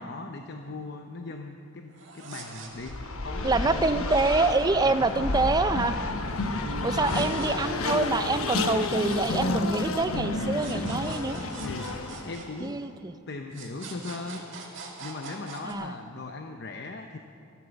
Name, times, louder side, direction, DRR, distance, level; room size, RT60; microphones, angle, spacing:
voice 1, 0.0-3.0 3.2-4.1 4.8-5.6 7.0-7.5 11.6-11.9 12.2-12.8 13.3-14.4 15.0-17.2, left 3 dB, 55° left, 4 dB, 0.7 m, -39 dB
sound 1, 1.9-3.3 6.8-8.4 10.5-13.1 13.5-15.7, right 4 dB, 60° right, 2.4 m, -44 dB
Race car auto racing, 2.8-12.4, left 2 dB, 90° left, 1.0 m, -30 dB
voice 2, 3.4-5.9 6.8-11.4 12.6-13.1 15.6-15.9, right 3 dB, 20° right, 11 dB, 0.4 m, -26 dB
sound 2, 3.9-9.1, right 2 dB, 80° right, 0.9 m, -46 dB
14.5 x 12.0 x 7.0 m, 2.6 s
head